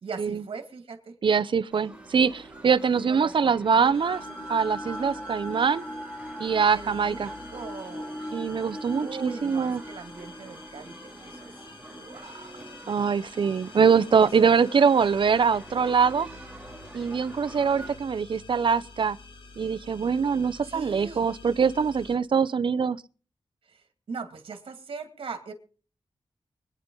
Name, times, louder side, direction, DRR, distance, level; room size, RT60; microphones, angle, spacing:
voice 1, 0.0-1.1 3.0-4.0 6.7-8.2 9.0-11.5 11.9-12.8 14.2-14.5 20.6-21.3 23.7-25.5, right 5 dB, 80° right, 2.4 m, -40 dB
voice 2, 1.2-4.2 4.5-5.8 6.4-7.3 8.3-9.8 12.9-16.3 16.9-19.2 19.6-23.0, right 6 dB, 65° right, 0.7 m, -23 dB
sound 1, 1.7-18.0, right 1 dB, 15° right, 3.0 m, -46 dB
sound 2, 3.5-13.7, equal, 35° left, 3.5 m, -41 dB
sound 3, 3.9-22.2, left 4 dB, 65° left, 2.7 m, -50 dB
24.0 x 9.8 x 3.9 m
wide cardioid pair, 85°, 9 cm